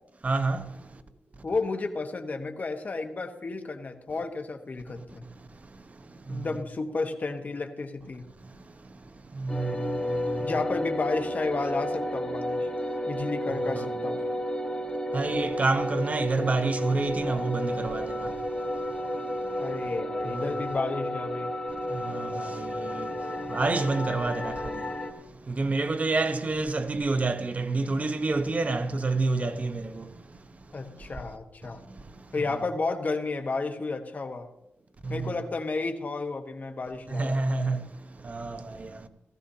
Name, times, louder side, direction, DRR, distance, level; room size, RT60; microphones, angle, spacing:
voice 1, 0.2-0.6 9.4-9.7 15.1-18.1 22.1-22.3 22.8-23.1 23.5-24.5 25.5-30.0 35.1-35.2 37.1-37.8 38.3-38.6, right 3 dB, 35° right, 0.9 m, -27 dB
voice 2, 1.4-5.2 6.3-8.2 10.4-12.7 13.1-14.2 19.6-21.5 30.7-31.8 32.3-34.5 35.1-37.4, left 3 dB, 40° left, 1.3 m, -32 dB
sound 1, 9.5-25.1, equal, 20° left, 1.4 m, -32 dB
17.5 x 15.0 x 2.8 m
wide cardioid pair, 125°, 4 cm